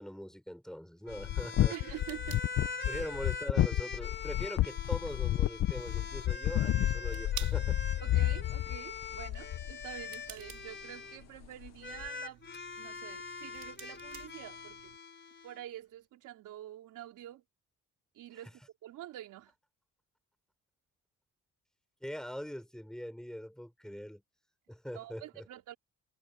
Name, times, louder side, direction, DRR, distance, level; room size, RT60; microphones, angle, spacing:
voice 1, 0.0-1.8 2.8-7.8 22.0-24.2 24.7-25.4, equal, ahead, 5.7 m, -42 dB
sound 1, 1.0-11.2 11.8-15.6, left 4 dB, 40° left, 4.4 m, -43 dB
sound 2, 1.1-10.0 11.4-11.7 12.0-12.1, left 14 dB, 60° left, 0.6 m, -30 dB
sound 3, 1.4-15.0, right 11 dB, 70° right, 2.7 m, -53 dB
voice 2, 1.7-2.4 2.9-3.0 8.0-12.4 12.8-15.0 15.4-17.4 18.1-19.5 24.9-25.8, right 13 dB, 85° right, 4.0 m, -47 dB
cardioid pair, 90°, 30 cm